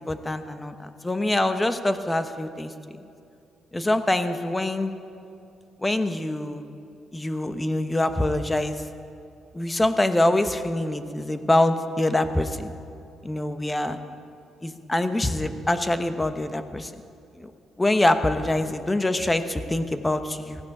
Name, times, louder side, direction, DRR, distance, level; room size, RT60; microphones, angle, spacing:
voice 1, 0.0-2.7 3.7-4.9 5.8-6.6 7.1-8.8 9.5-12.7 13.2-14.0 14.6-16.9 17.4-17.5 17.8-20.6, left 1 dB, 15° left, 9 dB, 1.0 m, -24 dB
18.5 x 14.5 x 4.9 m, 2.6 s
cardioid pair, 90°, 0 cm